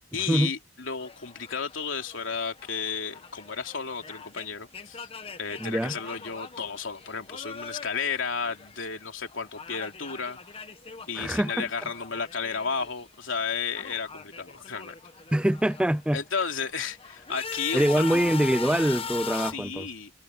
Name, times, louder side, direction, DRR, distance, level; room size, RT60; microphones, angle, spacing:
voice 1, 0.1-5.1 5.4-10.4 11.1-14.9 16.1-18.2 19.3-20.1, left 5 dB, 80° left, 3.0 m, -33 dB
sound 1, 1.0-9.0 9.3-13.0 13.3-16.0 16.5-19.5, left 6 dB, 30° left, 1.3 m, -41 dB
voice 2, 5.6-6.0 11.2-11.6 15.3-16.2 17.7-19.9, right 1 dB, 5° right, 0.3 m, -24 dB
head